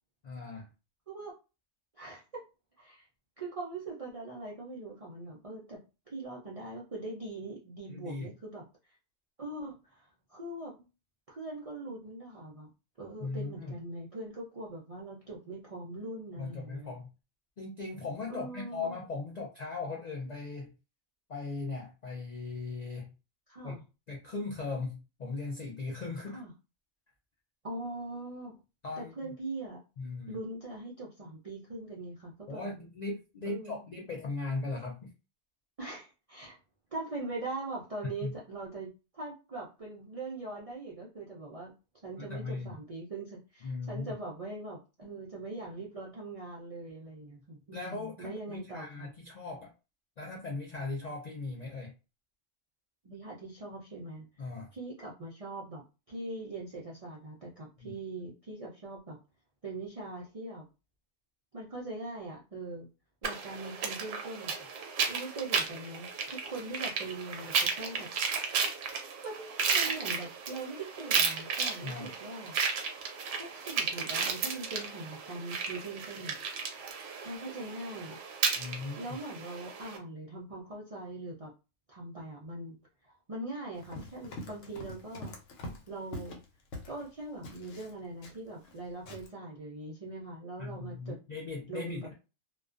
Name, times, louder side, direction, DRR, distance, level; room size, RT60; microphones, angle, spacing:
voice 1, 0.2-0.7 7.9-8.3 13.2-13.7 16.4-17.1 17.6-20.7 21.3-23.1 23.6-23.8 24.1-26.4 28.8-29.3 30.0-30.4 32.5-35.1 38.2-38.3 42.2-42.8 43.6-44.1 47.7-49.7 50.2-51.9 54.4-54.7 57.8-57.9 71.8-72.1 78.6-79.0 90.6-92.1, left 3 dB, 65° left, -1 dB, 0.4 m, -38 dB
voice 2, 1.9-2.4 2.8-3.1 3.4-5.8 6.1-8.6 9.4-10.9 11.3-12.7 13.0-16.9 18.3-18.9 23.5-23.8 26.3-26.5 27.6-28.6 29.0-29.8 30.3-32.6 33.5-33.8 35.8-36.6 36.9-41.7 42.0-49.1 53.0-54.3 54.7-59.2 59.6-60.7 61.5-62.9 63.2-64.6 65.1-68.1 69.2-72.6 73.4-76.4 77.2-78.2 79.0-81.5 81.9-82.8 83.0-85.3 85.9-86.4 86.8-91.2 91.7-92.1, right 2 dB, 55° right, -5 dB, 0.4 m, -41 dB
sound 1, 63.2-80.0, right 5 dB, 75° right, 0.9 m, -34 dB
Run, 83.7-87.1 87.4-88.8 89.1-89.3, left 1 dB, 85° left, 1.0 m, -44 dB
2.3 x 2.2 x 2.4 m, 0.29 s
omnidirectional pair, 1.3 m